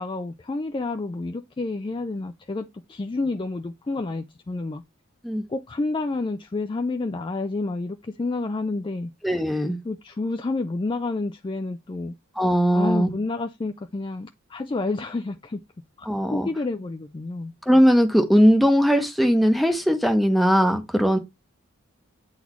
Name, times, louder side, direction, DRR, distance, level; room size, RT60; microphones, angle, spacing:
voice 1, 0.0-4.8 5.5-9.1 9.8-12.1 12.7-15.6 16.0-17.5, left 3 dB, 20° left, 0.3 m, -29 dB
voice 2, 9.2-9.8 12.4-13.1 16.1-16.5 17.7-21.2, equal, ahead, 0.8 m, -19 dB
8.5 x 4.0 x 3.0 m
head